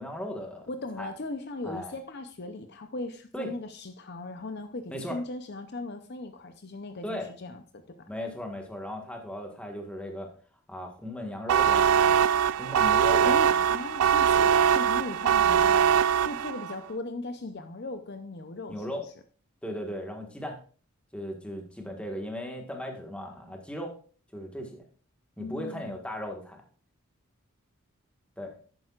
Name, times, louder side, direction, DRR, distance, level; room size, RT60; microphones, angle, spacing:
voice 1, 0.0-0.7 1.0-1.1 1.6-1.9 3.3-3.5 4.9-5.2 7.0-7.3 8.1-10.3 10.7-12.1 12.6-13.6 14.3-14.5 18.7-19.0 19.6-20.6 21.1-23.9 24.3-24.8 25.4-26.6 28.4-28.5, equal, 5° left, 2 dB, 1.5 m, -37 dB
voice 2, 0.7-8.1 13.2-15.9 16.2-18.9 25.4-25.9, left 2 dB, 50° left, 8 dB, 0.7 m, -38 dB
sound 1, 11.5-16.7, right 8 dB, 80° right, 0.4 m, -22 dB
11.0 x 8.9 x 2.4 m, 0.41 s
head